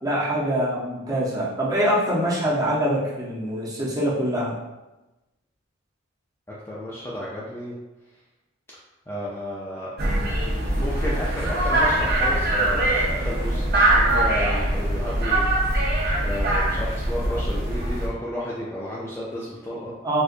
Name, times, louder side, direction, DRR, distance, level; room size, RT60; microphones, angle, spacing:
voice 1, 0.0-4.5 20.0-20.2, equal, 20° right, -7 dB, 0.8 m, -24 dB
voice 2, 6.5-7.7 9.1-9.9 10.7-13.6 13.9-15.5 16.2-19.9, left 1 dB, 10° left, -6 dB, 0.4 m, -32 dB
sound 1, 10.0-18.1, right 1 dB, 50° right, 0.7 m, -22 dB
4.2 x 2.4 x 2.5 m, 1.0 s
head